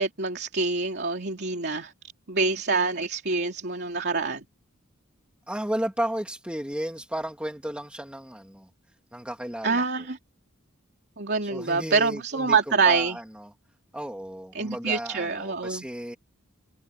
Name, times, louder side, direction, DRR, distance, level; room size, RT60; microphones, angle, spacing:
voice 1, 0.0-1.9 2.3-4.4 9.6-10.2 11.2-13.2 14.5-15.8, right 4 dB, 50° right, 3.1 m, -26 dB
voice 2, 5.5-8.7 9.1-10.1 11.4-13.5 13.9-16.2, right 1 dB, 5° right, 2.5 m, -34 dB
head